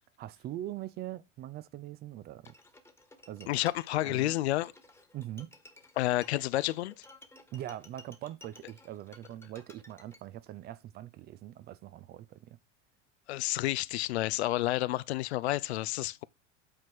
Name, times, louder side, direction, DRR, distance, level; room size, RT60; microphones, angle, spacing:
voice 1, 0.2-2.5 3.3-3.5 4.0-4.3 5.1-5.5 7.5-12.6, right 13 dB, 25° right, 0.4 m, -42 dB
Bowed string instrument, 2.4-10.2, left 2 dB, 5° left, 1.4 m, -55 dB
voice 2, 3.5-4.7 6.0-7.0 13.3-16.2, left 16 dB, 60° left, 0.5 m, -30 dB
8.7 x 4.4 x 4.5 m
figure-of-eight pair, 75°, 37 cm